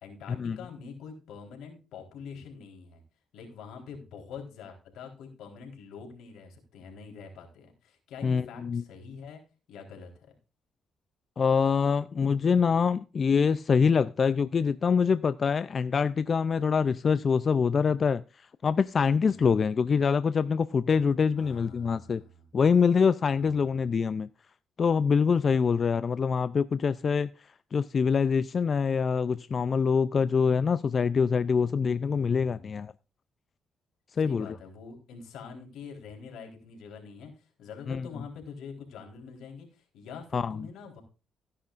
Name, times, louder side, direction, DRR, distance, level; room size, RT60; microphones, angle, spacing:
voice 1, 0.0-3.0 3.3-9.4 9.7-10.3 19.2-19.7 21.4-22.5 23.4-23.8 32.1-32.8 34.2-41.0, left 5 dB, 85° left, 3.9 m, -45 dB
voice 2, 8.2-8.8 11.4-18.2 18.6-22.2 22.5-24.3 24.8-27.3 27.7-32.9 34.2-34.6 37.9-38.1 40.3-40.7, left 6 dB, 45° left, 0.4 m, -25 dB
16.0 x 10.0 x 2.5 m
cardioid pair, 90°, 0 cm